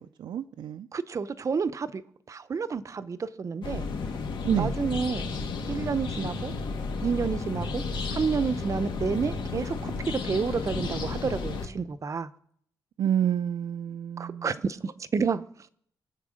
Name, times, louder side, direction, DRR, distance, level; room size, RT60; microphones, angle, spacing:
voice 1, 0.0-0.9 4.4-4.8 13.0-14.6, right 9 dB, 80° right, 0.6 m, -28 dB
voice 2, 0.9-2.0 2.3-3.9 4.6-5.2 5.7-6.5 7.0-7.8 8.1-12.3 14.2-15.4, right 5 dB, 40° right, 0.7 m, -30 dB
sound 1, 3.6-11.7, left 4 dB, 75° left, 2.1 m, -32 dB
24.0 x 8.1 x 6.4 m
cardioid pair, 120°, 8 cm